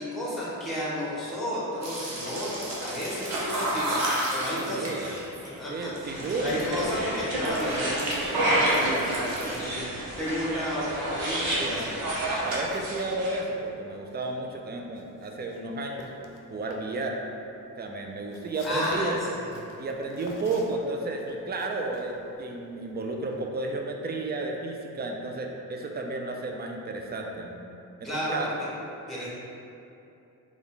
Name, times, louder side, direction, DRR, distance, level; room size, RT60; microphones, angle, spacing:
voice 1, 0.0-4.0 4.3-4.9 5.6-5.9 6.4-12.0 18.6-19.1 19.4-19.5 28.0-28.7 29.1-29.3, equal, ahead, -8 dB, 1.2 m, -32 dB
sound 1, 1.8-6.9 7.3-8.3 8.5-9.7, right 1 dB, 45° right, 0.9 m, -33 dB
voice 2, 4.5-5.1 5.7-6.6 12.4-16.1 16.5-17.2 17.8-19.3 19.8-27.6 28.0-28.5, right 2 dB, 30° right, 1 dB, 0.4 m, -32 dB
sound 2, 6.0-13.4, right 1 dB, 80° right, 0.8 m, -29 dB
Walk footsteps, 6.1-7.8 8.1-23.5, left 2 dB, 60° left, 0.6 m, -47 dB
3.8 x 2.4 x 3.5 m, 2.8 s
cardioid pair, 80°, 36 cm